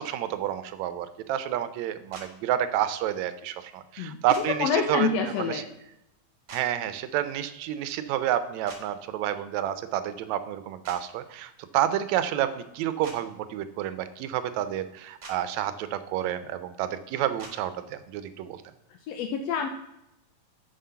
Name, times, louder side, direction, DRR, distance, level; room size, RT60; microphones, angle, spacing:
voice 1, 0.0-5.6 6.5-18.6, right 11 dB, 75° right, 12 dB, 1.8 m, -29 dB
sound 1, 2.1-2.3 4.3-4.4 6.5-6.6 8.7-8.8 10.8-11.0 13.0-13.2 15.2-15.4 17.4-17.5, right 2 dB, 35° right, 1.6 m, -42 dB
voice 2, 4.6-5.6 19.1-19.7, left 6 dB, 80° left, 5 dB, 1.5 m, -27 dB
7.6 x 6.3 x 5.6 m, 0.83 s
omnidirectional pair, 3.5 m